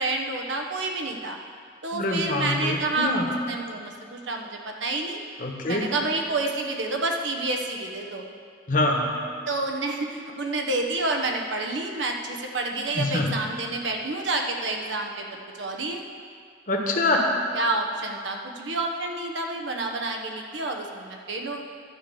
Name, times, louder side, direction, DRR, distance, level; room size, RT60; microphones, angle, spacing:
voice 1, 0.0-1.4 1.8-3.2 3.4-5.2 5.7-8.2 9.5-16.0 17.5-21.6, right 2 dB, 85° right, 2 dB, 1.1 m, -29 dB
voice 2, 1.9-3.3 5.4-5.9 8.7-9.1 12.9-13.4 16.7-17.3, left 2 dB, 45° left, 1 dB, 1.2 m, -25 dB
11.5 x 4.7 x 7.8 m, 2.3 s
head